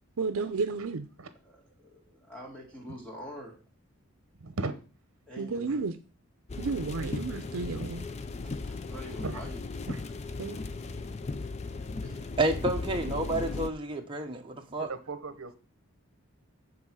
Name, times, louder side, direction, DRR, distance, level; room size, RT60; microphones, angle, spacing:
voice 1, 0.2-1.1 5.4-6.0 6.6-8.1 10.4-10.6, right 4 dB, 90° right, 0.5 m, -32 dB
voice 2, 1.4-3.6 5.3-5.8 8.4-9.6 12.0-12.3, equal, 5° left, 2.4 m, -45 dB
voice 3, 4.4-4.7 9.2-9.4 9.9-10.0 14.8-15.6, right 3 dB, 70° right, 0.9 m, -36 dB
sound 1, 6.5-13.7, left 3 dB, 30° left, 0.4 m, -36 dB
voice 4, 12.4-14.9, right 2 dB, 25° right, 1.0 m, -30 dB
7.8 x 4.0 x 6.1 m
head